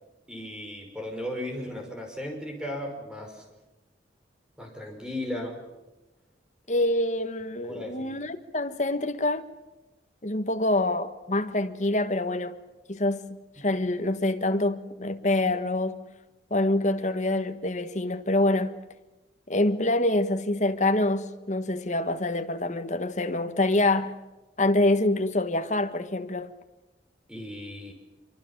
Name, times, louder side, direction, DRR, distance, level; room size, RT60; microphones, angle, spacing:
voice 1, 0.3-3.4 4.6-5.6 7.6-8.2 13.6-13.7 27.3-27.9, left 1 dB, 5° right, 5.4 m, -36 dB
voice 2, 6.7-9.4 10.2-12.6 12.9-16.0 16.5-18.7 19.5-24.1 24.6-26.5, left 2 dB, 40° left, 1.5 m, -26 dB
25.0 x 24.5 x 7.4 m
head